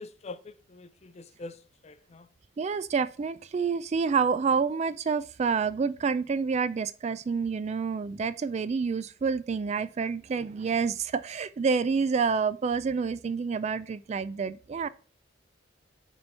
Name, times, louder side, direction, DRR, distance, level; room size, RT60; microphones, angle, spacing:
voice 1, 0.0-2.3, left 3 dB, 35° left, 0.4 m, -44 dB
voice 2, 2.6-14.9, right 5 dB, 35° right, 0.3 m, -28 dB
5.5 x 4.4 x 5.5 m
head